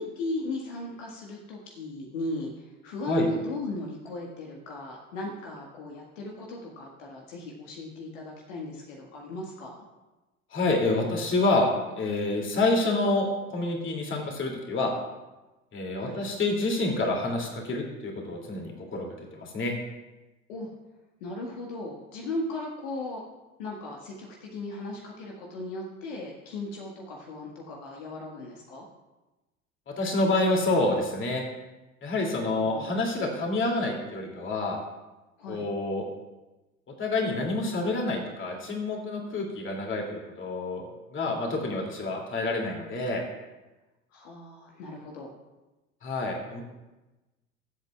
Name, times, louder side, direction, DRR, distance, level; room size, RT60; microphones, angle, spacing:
voice 1, 0.0-9.8 16.0-16.2 20.5-20.7 21.2-23.2 23.6-28.9 32.4-32.9 33.2-33.4 35.4-35.6 44.1-45.3, left 2 dB, 60° left, -1 dB, 1.8 m, -36 dB
voice 2, 10.5-11.7 12.0-14.9 15.7-19.1 19.3-19.7 29.9-31.4 32.0-34.8 35.5-36.1 37.0-40.9 41.1-43.2 46.0-46.6, left 2 dB, 25° left, 0 dB, 2.7 m, -28 dB
22.5 x 8.1 x 2.4 m, 1.1 s
figure-of-eight pair, 75°, 43 cm